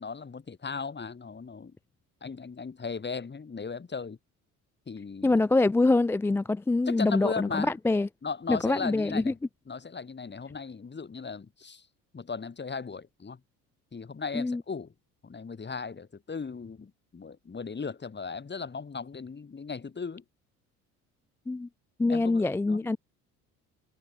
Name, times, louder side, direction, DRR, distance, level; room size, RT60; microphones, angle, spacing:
voice 1, 0.0-1.8 2.2-4.2 4.9-5.4 6.9-7.7 8.2-9.3 9.7-11.8 12.1-13.4 13.9-14.9 15.2-20.2 22.1-23.0, left 5 dB, 25° left, 3.1 m, -37 dB
voice 2, 5.2-8.1 8.5-9.3 14.3-14.6 21.5-21.7 22.0-23.0, left 2 dB, 5° left, 0.3 m, -25 dB
hypercardioid pair, 60°, 44 cm